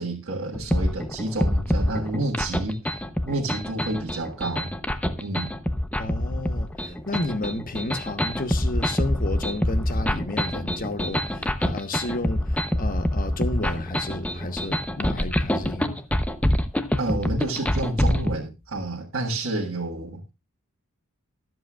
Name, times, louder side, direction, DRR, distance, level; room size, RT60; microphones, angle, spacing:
voice 1, 0.0-2.8 3.3-4.7 5.2-5.5 17.0-20.3, right 2 dB, 65° right, 1.5 m, -29 dB
sound 1, 0.5-18.3, left 1 dB, 5° left, 0.7 m, -26 dB
voice 2, 6.0-16.0, left 2 dB, 40° left, 1.1 m, -32 dB
23.0 x 7.8 x 2.4 m
head